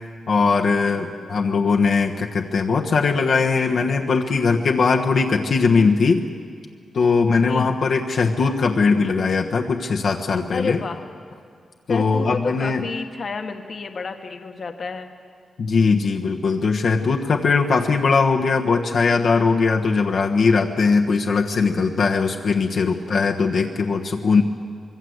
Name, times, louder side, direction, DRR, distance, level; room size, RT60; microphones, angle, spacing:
voice 1, 0.3-6.2 6.9-10.8 11.9-12.8 15.6-24.4, left 4 dB, 55° left, 1 dB, 1.3 m, -20 dB
voice 2, 0.8-1.4 7.3-7.7 10.5-11.0 11.9-15.1 22.7-23.1, left 4 dB, 40° left, 6 dB, 1.4 m, -31 dB
25.0 x 22.5 x 8.0 m, 2.2 s
wide cardioid pair, 180°, 0 cm